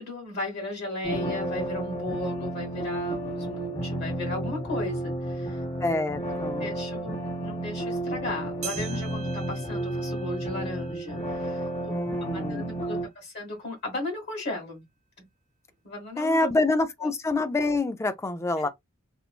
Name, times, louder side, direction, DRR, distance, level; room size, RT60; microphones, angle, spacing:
voice 1, 0.0-5.6 6.3-14.8 15.2-15.3 15.8-16.5 17.0-17.1 18.6-18.7, left 2 dB, 50° left, 1.4 m, -36 dB
sound 1, 1.0-13.0, right 1 dB, 30° left, 0.9 m, -32 dB
voice 2, 5.8-6.7 11.9-12.8 16.2-18.7, left 2 dB, 15° left, 0.3 m, -26 dB
sound 2, 8.6-13.3 13.8-13.9 14.7-14.8 15.7-15.8, right 8 dB, 35° right, 0.8 m, -44 dB
3.0 x 2.2 x 2.3 m
head